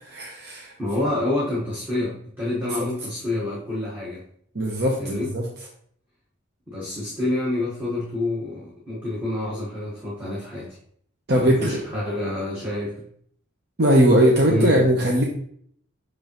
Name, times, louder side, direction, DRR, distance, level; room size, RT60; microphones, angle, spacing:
voice 1, 0.0-0.7 1.0-1.1 2.7-2.9 4.5-5.4 11.3-11.8 13.8-15.2, right 1 dB, 55° right, -1 dB, 0.9 m, -20 dB
voice 2, 0.8-4.2 5.0-5.3 6.7-10.8 11.4-13.1 14.5-14.9, left 2 dB, 10° right, -8 dB, 1.3 m, -27 dB
6.2 x 5.3 x 3.0 m, 0.63 s
head